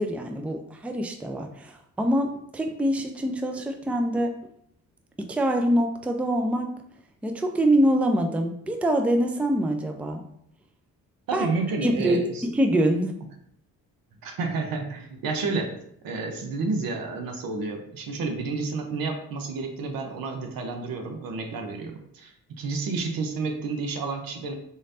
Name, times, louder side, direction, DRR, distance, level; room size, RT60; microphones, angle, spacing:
voice 1, 0.0-4.3 5.2-6.7 7.2-10.2 11.3-11.5 11.8-13.2, right 1 dB, 5° right, 4 dB, 0.5 m, -24 dB
voice 2, 11.3-12.4 14.2-15.8 16.0-24.5, right 4 dB, 65° right, 4 dB, 0.8 m, -30 dB
4.1 x 3.2 x 2.6 m, 0.70 s
supercardioid pair, 60°, 37 cm